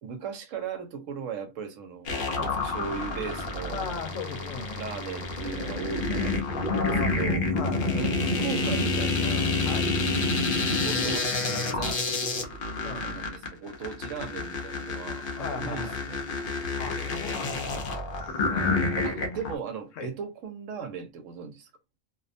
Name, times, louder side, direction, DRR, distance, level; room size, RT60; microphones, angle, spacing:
voice 1, 0.0-3.8 4.7-7.5 7.9-9.6 10.6-11.3 11.7-12.1 13.0-16.2 18.5-21.7, right 6 dB, 75° right, 1.0 m, -38 dB
sound 1, 2.1-19.5, left 3 dB, 55° left, 0.7 m, -28 dB
voice 2, 3.7-5.0 6.7-7.1 7.5-8.1 9.6-10.0 12.8-13.2 15.4-16.0 16.8-17.8 18.1-18.8 19.1-19.4 20.0-20.1, left 4 dB, 75° left, 1.0 m, -37 dB
2.6 x 2.1 x 2.5 m
omnidirectional pair, 1.3 m